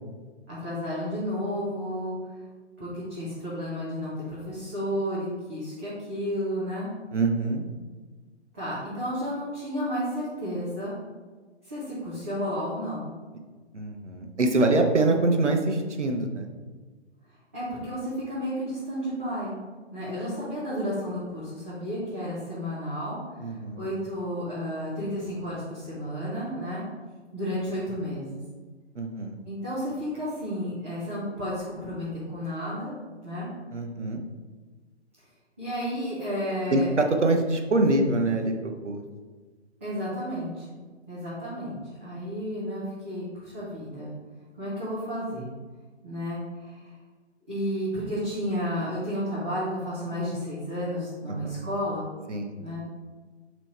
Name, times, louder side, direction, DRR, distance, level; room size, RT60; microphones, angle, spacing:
voice 1, 0.5-2.2 2.8-6.9 8.5-10.9 11.6-13.1 17.5-19.5 19.9-23.2 23.5-26.8 27.3-28.4 29.5-33.0 33.2-33.5 35.6-36.9 39.8-40.8 41.1-44.1 44.6-45.5 46.0-46.9 47.5-52.1 52.6-52.8, equal, 15° right, -12 dB, 0.5 m, -32 dB
voice 2, 7.1-7.7 13.7-16.5 23.4-23.9 28.9-29.4 33.7-34.2 36.7-39.0 51.3-51.6 52.3-52.5, right 2 dB, 90° right, 4 dB, 0.7 m, -25 dB
3.4 x 3.0 x 4.2 m, 1.4 s
figure-of-eight pair, 135°, 34 cm